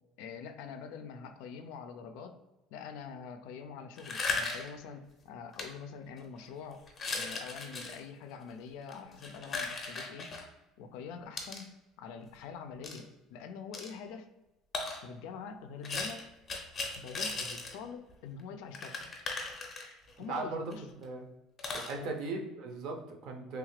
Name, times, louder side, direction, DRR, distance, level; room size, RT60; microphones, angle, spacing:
voice 1, 0.2-2.4 2.7-6.8 7.1-10.3 10.8-11.7 12.0-14.3 15.0-16.3 17.0-19.0 20.2-20.8 21.9-22.1, left 6 dB, 80° left, 7 dB, 0.3 m, -45 dB
sound 1, 4.0-4.8 5.5-5.6 6.2-6.4 6.9-8.0 8.8-10.4 11.4-11.6 12.8-13.0 13.7-13.9 14.7-15.0 15.8-17.8 18.1-18.2 18.4-18.5 18.7-20.2 20.7-20.8 21.0-21.1 21.6-21.9, left 3 dB, 25° left, 0.6 m, -37 dB
voice 2, 20.3-21.3 21.7-23.6, right 3 dB, 60° right, 3 dB, 0.6 m, -38 dB
3.1 x 2.4 x 3.2 m, 0.99 s
cardioid pair, 150°, 0 cm